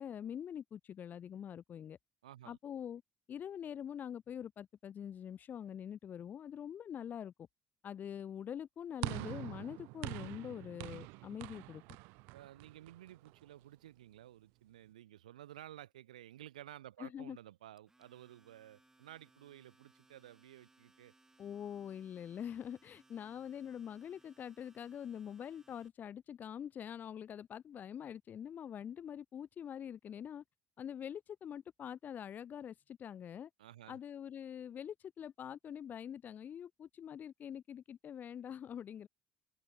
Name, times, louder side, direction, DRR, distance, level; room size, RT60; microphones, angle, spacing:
voice 1, 0.0-2.0 2.4-3.0 3.3-7.3 7.8-11.8 17.0-17.4 21.4-30.4 30.8-33.5 33.9-39.1, left 9 dB, 50° left, 1.8 m, -45 dB
voice 2, 2.2-2.6 12.3-21.1 33.6-34.0, right 13 dB, 90° right, 3.1 m, -54 dB
sound 1, 9.0-13.4, right 29 dB, 75° right, 0.5 m, -44 dB
Domestic sounds home sounds, 17.8-25.9, right 2 dB, 15° right, 4.6 m, -68 dB
hypercardioid pair, 60°, 4 cm